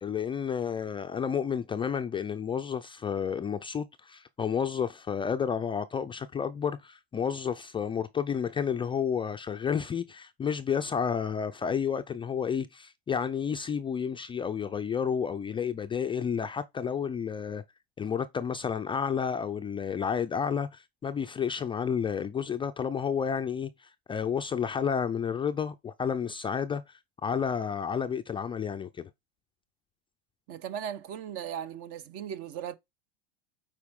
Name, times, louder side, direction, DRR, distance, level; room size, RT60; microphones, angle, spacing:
voice 1, 0.0-17.6 18.0-29.1, left 7 dB, 15° left, 0.4 m, -31 dB
voice 2, 30.5-32.8, right 9 dB, 45° right, 0.9 m, -37 dB
8.4 x 4.5 x 3.6 m
supercardioid pair, 115°, 31 cm